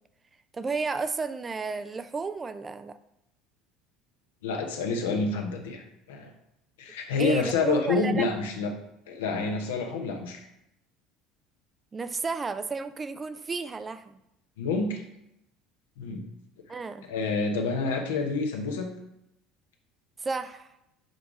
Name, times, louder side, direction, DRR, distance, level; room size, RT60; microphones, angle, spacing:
voice 1, 0.5-3.0 7.2-8.2 11.9-14.2 16.7-17.1 20.2-20.7, right 4 dB, 25° right, 11 dB, 0.4 m, -32 dB
voice 2, 4.4-6.3 6.8-8.7 9.1-10.5 14.6-15.0 16.0-16.2 17.1-18.9, left 4 dB, 70° left, 3 dB, 0.9 m, -28 dB
5.2 x 4.7 x 5.0 m, 0.83 s
figure-of-eight pair, 65°, 0 cm